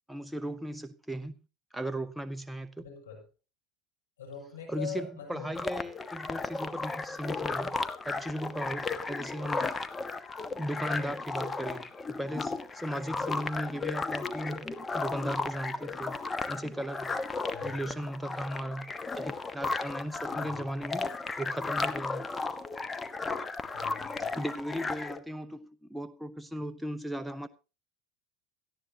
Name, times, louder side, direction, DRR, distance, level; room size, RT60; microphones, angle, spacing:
voice 1, 0.1-1.3 1.7-2.8 4.7-7.7 8.0-9.7 10.5-14.7 14.9-16.2 16.5-17.2 17.6-21.1 21.4-22.3 24.4-27.5, right 1 dB, 5° right, 0.8 m, -37 dB
voice 2, 2.8-3.2 4.2-5.5 17.5-17.9 20.3-20.7 23.7-24.4, left 6 dB, 85° left, 7.0 m, -43 dB
sound 1, 5.5-25.2, left 3 dB, 20° left, 1.2 m, -35 dB
17.5 x 13.5 x 2.8 m
hypercardioid pair, 80°, 0 cm